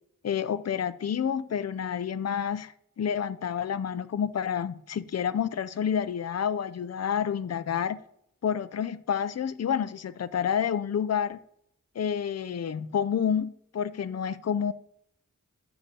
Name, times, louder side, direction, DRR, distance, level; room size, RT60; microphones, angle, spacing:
voice 1, 0.2-8.0 8.4-11.4 12.0-14.7, left 8 dB, 50° left, 0.5 m, -29 dB
9.8 x 6.9 x 2.8 m
wide cardioid pair, 45°, 33 cm